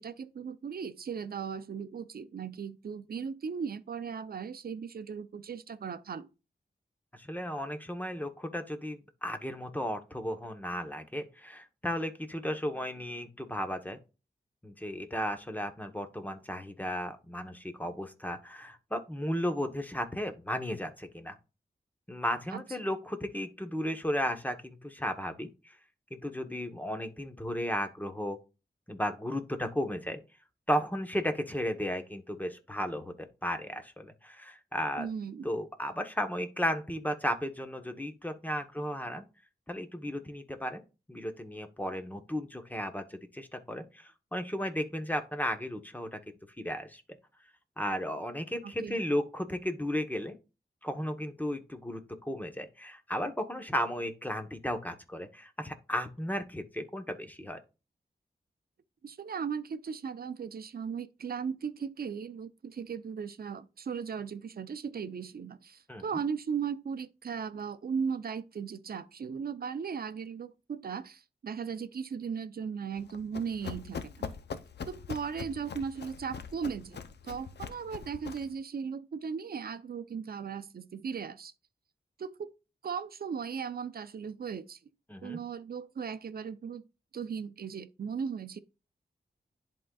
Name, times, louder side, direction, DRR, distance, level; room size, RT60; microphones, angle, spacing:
voice 1, 0.0-6.3 22.5-22.6 35.0-35.4 48.6-49.0 59.0-74.4 74.9-81.5 82.2-82.5 82.8-84.8 85.2-86.8 87.1-88.6, right 6 dB, 65° right, 0.6 m, -37 dB
voice 2, 7.1-14.0 14.6-21.4 22.1-25.7 26.1-28.4 28.9-30.2 30.7-35.1 35.4-39.2 39.7-40.8 41.1-46.2 46.6-47.0 47.8-50.4 50.8-57.6 65.9-66.0 85.1-85.4, equal, 10° left, 1.0 m, -34 dB
Run, 73.0-78.6, left 6 dB, 85° left, 0.6 m, -42 dB
11.0 x 3.8 x 2.3 m
wide cardioid pair, 90°, 17 cm